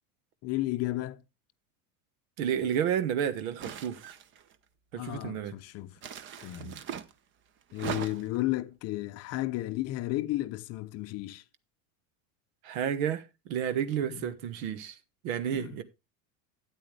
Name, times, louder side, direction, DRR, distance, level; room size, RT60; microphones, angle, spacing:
voice 1, 0.4-1.2 4.9-6.0 6.4-6.7 7.7-11.4 14.0-14.3 15.5-15.8, left 17 dB, 40° left, 0.7 m, -33 dB
voice 2, 2.4-4.0 4.9-5.5 6.6-6.8 12.6-15.0 15.2-15.8, right 9 dB, 80° right, 1.4 m, -31 dB
sound 1, 3.6-4.5 6.0-7.1 7.7-8.4, right 8 dB, 30° right, 0.7 m, -39 dB
12.5 x 9.2 x 3.3 m
cardioid pair, 160°, 41 cm